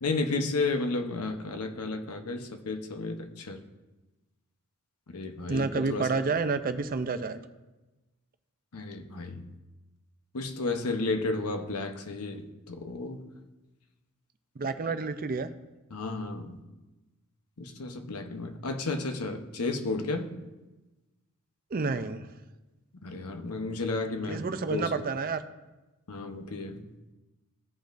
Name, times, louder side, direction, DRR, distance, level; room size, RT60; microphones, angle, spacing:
voice 1, 0.0-3.6 5.1-6.2 8.7-9.4 10.3-13.2 14.9-15.0 15.9-16.6 17.6-20.3 23.0-24.4 24.7-25.0 26.1-26.9, left 3 dB, 80° left, 6 dB, 0.9 m, -32 dB
voice 2, 5.5-7.4 14.6-15.5 21.7-22.3 24.3-25.4, right 4 dB, 40° right, 10 dB, 0.5 m, -29 dB
16.0 x 5.3 x 2.6 m, 1.1 s
head